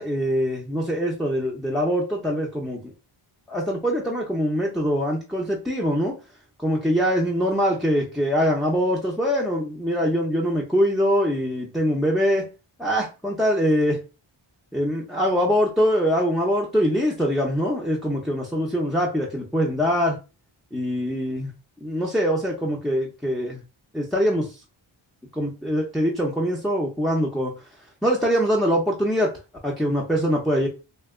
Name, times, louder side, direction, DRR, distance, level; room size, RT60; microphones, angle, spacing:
voice 1, 0.0-2.9 3.5-6.2 6.6-12.5 12.8-14.0 14.7-20.2 20.7-21.5 21.8-23.6 23.9-24.5 25.3-27.5 28.0-29.3 29.6-30.7, equal, ahead, 0.5 m, -23 dB
2.8 x 2.2 x 3.5 m
wide cardioid pair, 115°, 50 cm